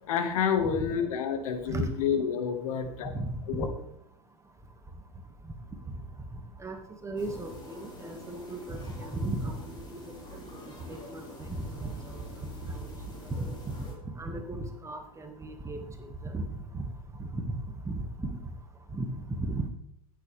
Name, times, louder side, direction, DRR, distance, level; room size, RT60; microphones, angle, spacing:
voice 1, 0.0-3.1 3.5-3.7, left 7 dB, 65° left, 7 dB, 1.8 m, -29 dB
voice 2, 3.0-3.3 6.6-6.8 7.0-9.8 10.3-10.4 10.9-11.5 11.7-12.0 12.7-12.9 13.3-13.5 14.2-15.9 16.2-16.4 16.7-16.9 17.3-17.6 17.9-18.0 18.9-19.1 19.4-19.7, right 2 dB, 15° right, 5 dB, 1.9 m, -35 dB
sound 1, 7.2-13.9, left 1 dB, 25° left, 4.2 m, -46 dB
15.0 x 9.8 x 3.4 m, 0.75 s
hypercardioid pair, 90°, 20 cm